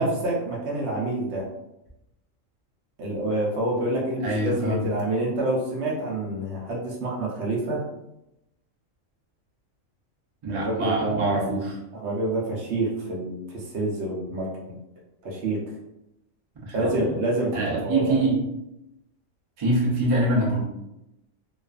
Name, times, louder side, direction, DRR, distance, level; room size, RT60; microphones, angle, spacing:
voice 1, 0.0-1.5 3.0-7.9 10.5-11.6 11.9-14.8 15.2-15.6 16.7-18.2, right 2 dB, 65° right, -3 dB, 0.9 m, -27 dB
voice 2, 4.2-4.9 10.4-11.7 16.5-17.1 17.5-18.4 19.6-20.6, right 1 dB, 40° right, -5 dB, 0.4 m, -25 dB
2.4 x 2.3 x 2.3 m, 0.87 s
omnidirectional pair, 1.4 m